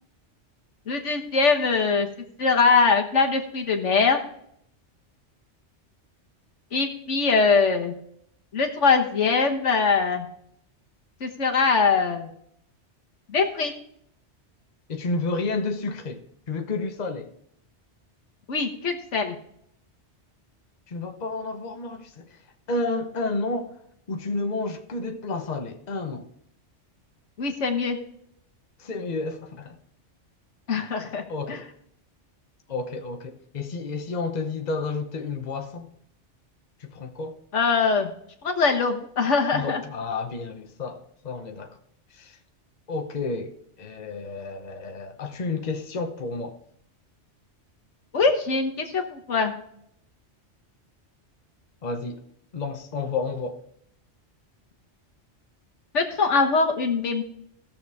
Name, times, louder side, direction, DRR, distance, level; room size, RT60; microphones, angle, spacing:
voice 1, 0.9-2.1 2.4-4.2 6.7-7.9 8.5-10.3 11.2-12.3 13.3-13.7 18.5-19.4 27.4-28.0 30.7-31.6 37.5-38.2 38.4-39.8 48.1-49.5 55.9-57.2, left 4 dB, 85° left, 1.6 m, -22 dB
voice 2, 14.9-16.2 16.5-17.3 20.9-22.4 22.7-23.8 24.1-26.3 28.8-29.8 31.3-31.7 32.7-35.9 36.8-37.4 39.5-41.8 42.1-42.4 42.9-46.6 51.8-52.2 52.5-53.6, left 3 dB, 40° left, 1.0 m, -31 dB
17.5 x 6.8 x 3.5 m
omnidirectional pair, 1.2 m